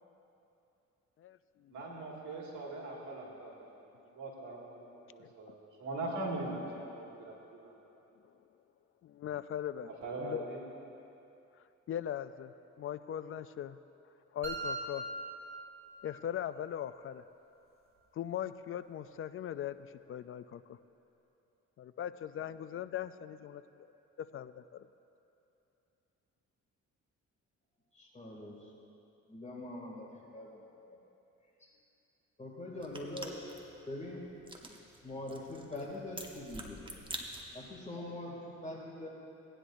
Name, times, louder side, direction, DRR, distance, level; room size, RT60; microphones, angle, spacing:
voice 1, 1.2-1.8 5.2-5.5 8.2-8.3 9.0-9.9 10.2-10.4 11.9-13.8 14.3-15.1 16.0-17.2 18.1-20.8 21.8-23.9 24.2-24.9, left 10 dB, 45° left, 13 dB, 0.4 m, -40 dB
voice 2, 1.7-7.9 9.9-10.6, right 2 dB, 75° right, -3 dB, 2.1 m, -41 dB
sound 1, 14.4-16.4, right 2 dB, 45° right, 2.1 m, -41 dB
voice 3, 27.9-28.6 29.3-31.0 32.4-33.5 33.9-34.2 35.0-36.9 37.5-39.1, left 1 dB, 25° left, -3 dB, 2.4 m, -43 dB
sound 2, 32.8-37.8, right 1 dB, 15° right, 1.1 m, -47 dB
18.0 x 9.9 x 2.6 m, 2.9 s
cardioid pair, 90°, 30 cm